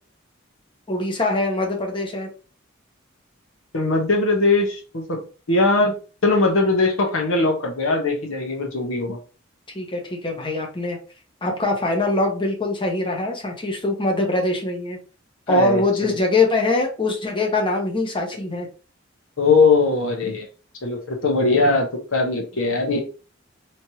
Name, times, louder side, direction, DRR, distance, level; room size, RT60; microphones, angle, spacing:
voice 1, 0.9-2.3 9.7-11.0 11.4-15.0 15.5-18.7, left 2 dB, 25° left, 1 dB, 0.9 m, -23 dB
voice 2, 3.7-5.2 5.5-5.9 6.2-9.2 15.5-16.2 19.4-20.5 20.8-23.0, left 3 dB, 75° left, 2 dB, 1.0 m, -20 dB
3.2 x 2.9 x 2.8 m, 0.36 s
head